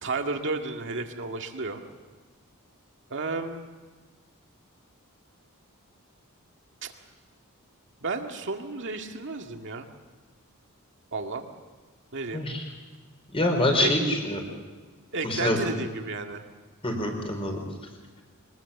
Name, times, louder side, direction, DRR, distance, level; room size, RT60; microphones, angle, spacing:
voice 1, 0.0-1.8 3.1-3.7 6.8-6.9 8.0-9.9 11.1-11.5 12.1-12.4 13.8-13.9 15.1-16.4, right 3 dB, 60° right, 4 dB, 2.0 m, -32 dB
voice 2, 12.3-12.6 13.3-14.4 15.2-15.6 16.8-17.6, left 1 dB, 25° left, 3 dB, 4.5 m, -25 dB
23.5 x 20.5 x 7.1 m, 1.4 s
head